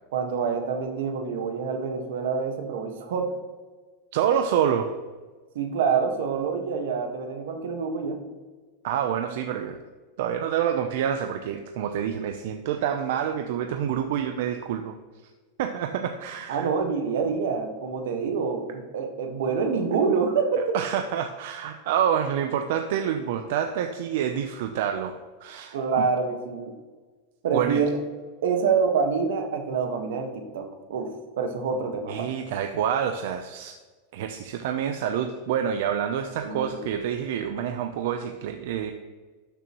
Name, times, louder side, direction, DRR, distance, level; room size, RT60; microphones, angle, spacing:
voice 1, 0.1-3.3 5.5-8.2 16.5-20.8 25.7-26.7 27.4-27.9 28.4-31.1 31.4-32.3 36.4-36.8, right 5 dB, 80° right, 5 dB, 1.5 m, -26 dB
voice 2, 4.1-4.9 8.8-9.8 10.2-14.9 15.6-16.7 20.7-25.1 25.4-26.1 27.5-27.8 32.1-33.7 34.1-38.9, right 9 dB, 60° right, 6 dB, 0.6 m, -27 dB
12.5 x 6.7 x 3.0 m, 1.3 s
supercardioid pair, 160°, 0 cm